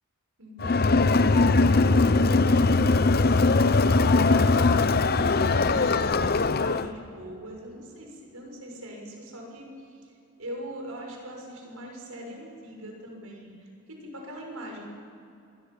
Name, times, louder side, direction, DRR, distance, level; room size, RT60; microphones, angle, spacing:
voice 1, 0.4-14.8, equal, 70° right, 1 dB, 6.6 m, -42 dB
Crowd, 0.6-6.9, left 3 dB, 45° left, 0.8 m, -21 dB
sound 1, 0.6-6.3, equal, 10° left, 2.5 m, -46 dB
26.0 x 23.0 x 7.3 m, 2.7 s
head